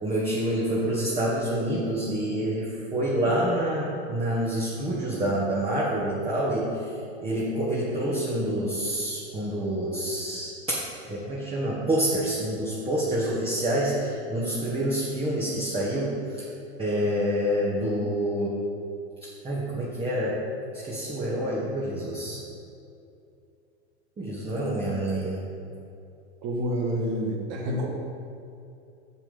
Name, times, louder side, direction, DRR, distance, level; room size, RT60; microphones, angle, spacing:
voice 1, 0.0-6.8 7.2-10.8 11.0-16.4 16.8-18.6 19.4-20.4 20.8-22.4 24.2-25.4, right 1 dB, 15° right, -6 dB, 1.6 m, -27 dB
voice 2, 26.4-27.9, equal, 50° right, -1 dB, 1.7 m, -28 dB
7.4 x 6.7 x 5.2 m, 2.6 s
hypercardioid pair, 105°, 33 cm